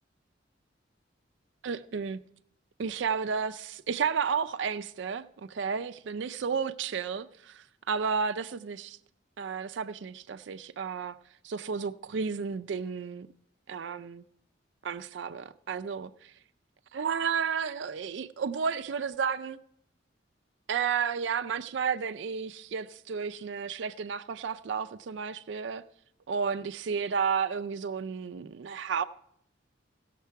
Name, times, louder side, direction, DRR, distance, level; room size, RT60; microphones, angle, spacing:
voice 1, 1.6-2.2 2.8-9.0 9.4-11.2 11.4-13.3 13.7-14.2 14.8-16.3 16.9-19.6 20.7-25.8 26.3-29.0, right 6 dB, 70° right, 0.4 m, -32 dB
17.0 x 6.6 x 4.6 m
head